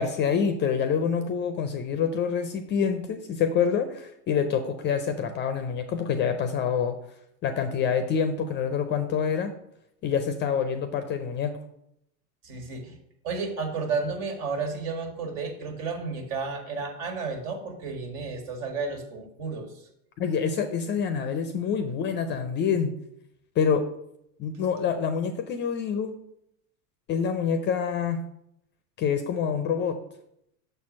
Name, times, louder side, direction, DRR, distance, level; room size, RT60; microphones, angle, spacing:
voice 1, 0.0-7.0 7.4-9.5 10.0-11.6 20.2-22.9 23.6-23.9 24.4-26.2 27.1-28.2 29.0-30.0, left 7 dB, 25° left, 9 dB, 0.4 m, -26 dB
voice 2, 12.4-12.9 13.2-19.7, right 4 dB, 65° right, 4 dB, 1.9 m, -32 dB
6.6 x 4.4 x 6.2 m, 0.78 s
hypercardioid pair, 115°, 48 cm